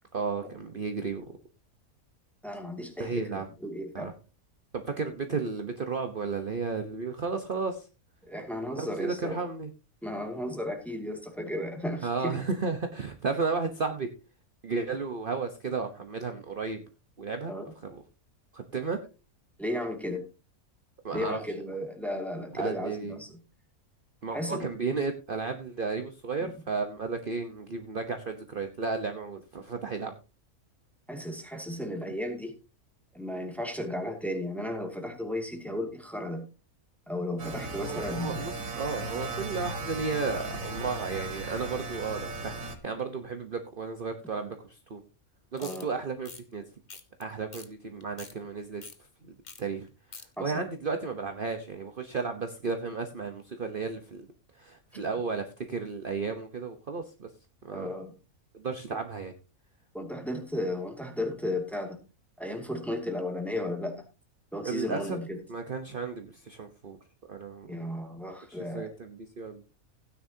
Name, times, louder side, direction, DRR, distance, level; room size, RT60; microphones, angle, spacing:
voice 1, 0.1-1.2 3.0-3.5 3.9-4.1 4.8-7.9 8.8-9.7 12.0-14.1 14.6-16.8 17.2-17.5 17.8-18.0 18.5-19.0 21.0-21.4 22.5-23.2 24.2-30.1 37.8-45.0 45.5-46.6 47.2-48.8 49.2-49.3 49.6-49.9 50.1-54.3 54.5-57.3 57.6-57.9 58.5-59.3 64.6-65.2 65.5-67.0 67.3-67.9 68.5-69.6, right 4 dB, 40° right, 6 dB, 1.2 m, -33 dB
voice 2, 2.4-4.1 8.3-9.4 10.0-12.4 17.5-17.7 19.6-20.3 21.1-23.3 24.3-24.7 31.1-32.5 33.1-36.5 37.1-38.5 45.6-45.9 50.4-50.6 57.7-58.1 59.9-62.0 62.4-64.0 64.5-65.4 67.7-68.9, left 1 dB, ahead, 3 dB, 2.4 m, -34 dB
sound 1, 37.4-42.8, right 2 dB, 65° right, 2.0 m, -36 dB
sound 2, 45.6-45.8 46.2-46.4 46.9-47.2 47.5-47.7 48.0-48.3 48.8-49.0 49.4-49.6 49.9-50.3, left 4 dB, 35° left, 1.2 m, -45 dB
16.5 x 9.8 x 2.8 m, 0.30 s
omnidirectional pair, 1.5 m